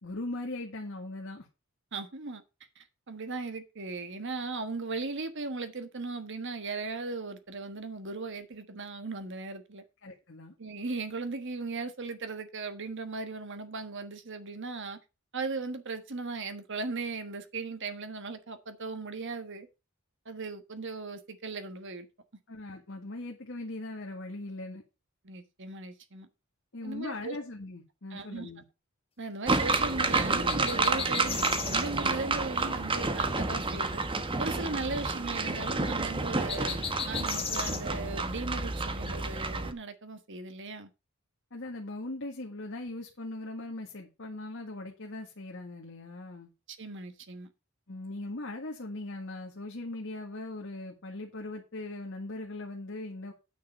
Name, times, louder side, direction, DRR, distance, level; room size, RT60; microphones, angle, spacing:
voice 1, 0.0-1.5 10.0-10.5 22.5-24.8 26.7-28.6 41.5-46.5 47.9-53.3, left 2 dB, 60° left, 1.7 m, -40 dB
voice 2, 1.9-2.4 2.7-9.8 10.6-15.0 15.3-19.7 20.2-22.1 25.2-26.3 26.8-27.4 28.1-28.5 29.2-34.0 34.4-40.9 46.7-47.5, right 3 dB, 60° right, 1.4 m, -37 dB
sound 1, 29.5-39.7, right 3 dB, 25° right, 1.0 m, -30 dB
sound 2, 30.5-31.9 36.5-37.8, left 7 dB, 25° left, 1.9 m, -35 dB
9.4 x 6.6 x 5.5 m
head